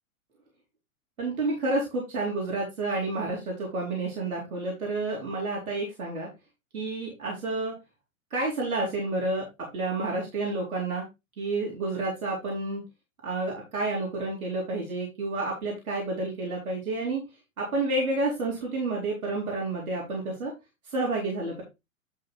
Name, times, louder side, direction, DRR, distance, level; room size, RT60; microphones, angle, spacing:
voice 1, 1.2-6.3 6.7-7.7 8.3-9.5 9.7-11.1 11.4-12.8 13.2-17.2 17.6-20.5 20.8-21.6, right 2 dB, 80° right, -2 dB, 4.0 m, -30 dB
11.0 x 4.0 x 4.0 m, 0.24 s
hypercardioid pair, 115°, 42 cm